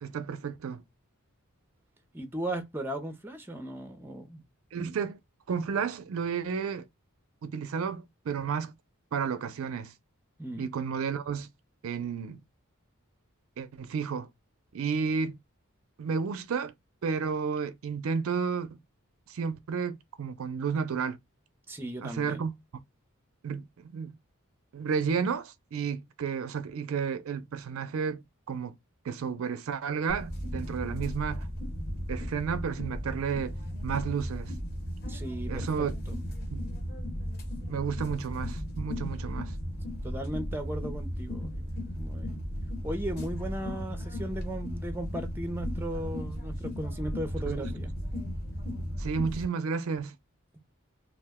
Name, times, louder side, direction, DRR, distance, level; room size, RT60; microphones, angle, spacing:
voice 1, 0.0-0.8 4.7-5.2 5.5-6.9 7.4-8.7 9.1-9.9 10.6-11.5 11.8-12.4 13.6-14.3 14.7-15.4 16.0-16.7 17.0-18.8 19.3-21.2 22.0-22.5 23.4-24.1 24.7-28.7 29.0-31.5 32.1-34.5 35.5-36.0 36.5-36.6 37.6-39.5 47.5-47.7 49.0-50.2, right 6 dB, 70° right, 0.4 m, -32 dB
voice 2, 2.1-4.4 10.4-10.7 21.7-22.4 35.1-36.2 40.0-41.7 42.0-42.4 42.8-47.9, right 1 dB, 10° right, 0.5 m, -37 dB
sound 1, 30.1-49.4, equal, 45° left, 1.0 m, -35 dB
2.4 x 2.0 x 3.4 m
head